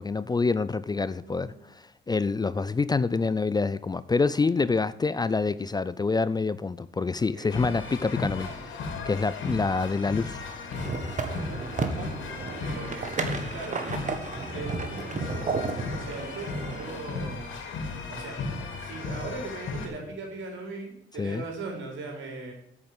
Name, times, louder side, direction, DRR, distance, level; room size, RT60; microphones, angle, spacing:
voice 1, 0.0-8.8 9.1-10.4 21.2-21.4, left 4 dB, 20° left, 0.4 m, -27 dB
voice 2, 1.2-1.6 7.2-7.5 12.4-13.1 13.5-13.8 14.5-17.5 18.1-18.5 18.8-22.5, right 3 dB, 75° right, 4.1 m, -39 dB
sound 1, 7.5-19.9, left 3 dB, 75° left, 2.7 m, -35 dB
sound 2, 10.7-17.0, right 4 dB, 40° right, 1.6 m, -33 dB
8.4 x 7.3 x 7.9 m
cardioid pair, 90°, 20 cm